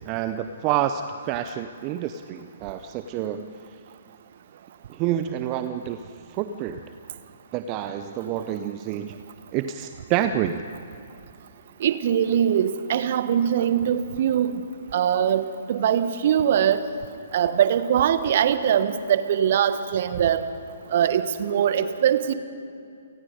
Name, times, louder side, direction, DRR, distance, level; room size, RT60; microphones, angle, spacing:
voice 1, 0.1-3.5 4.9-6.0 6.3-6.8 7.5-9.2 9.5-10.6, right 11 dB, 30° right, 10 dB, 0.7 m, -28 dB
voice 2, 11.8-14.5 14.9-16.8 17.3-20.4 20.9-22.3, right 9 dB, 45° right, 12 dB, 1.2 m, -22 dB
29.0 x 19.5 x 5.2 m, 2.6 s
figure-of-eight pair, 125°, 0 cm